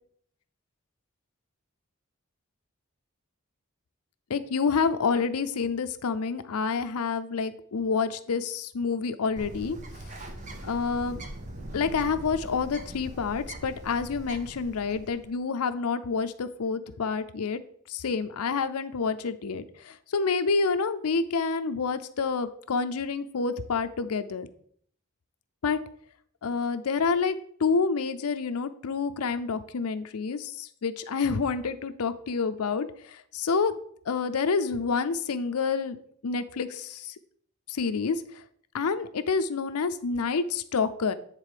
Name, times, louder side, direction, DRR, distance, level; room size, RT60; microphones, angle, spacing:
voice 1, 4.3-9.8 10.6-11.2 11.7-17.6 17.9-24.5 25.6-25.8 26.4-27.3 27.6-33.8 34.1-36.0 36.2-37.1 37.7-38.2 38.7-41.1, left 5 dB, 85° left, 10 dB, 0.6 m, -28 dB
Bird, 9.4-15.3, right 1 dB, 35° right, 0.8 m, -41 dB
9.1 x 3.7 x 4.9 m, 0.62 s
head